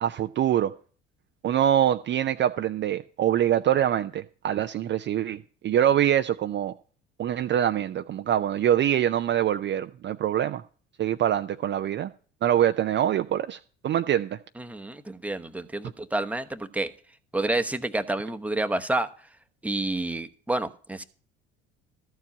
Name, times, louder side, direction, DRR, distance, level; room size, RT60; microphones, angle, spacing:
voice 1, 0.0-0.7 1.4-6.7 7.2-10.6 11.0-12.1 12.4-13.6 13.8-14.4, right 10 dB, 35° right, 0.5 m, -24 dB
voice 2, 14.6-16.9 17.3-19.1 19.6-21.0, right 2 dB, 5° right, 0.9 m, -29 dB
13.0 x 4.7 x 8.5 m
hypercardioid pair, 65°, 31 cm